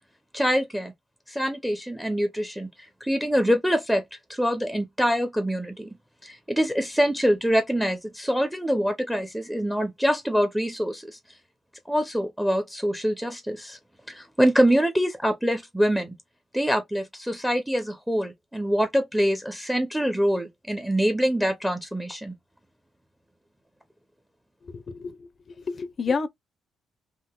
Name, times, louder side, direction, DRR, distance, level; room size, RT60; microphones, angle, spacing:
voice 1, 0.3-0.9 1.3-4.0 4.3-6.0 6.2-11.2 11.9-13.8 14.1-16.1 16.5-22.3, equal, 5° right, 0.6 m, -25 dB
voice 2, 25.7-26.3, left 5 dB, 40° left, 0.5 m, -28 dB
3.6 x 2.5 x 2.2 m
cardioid pair, 90°, 0 cm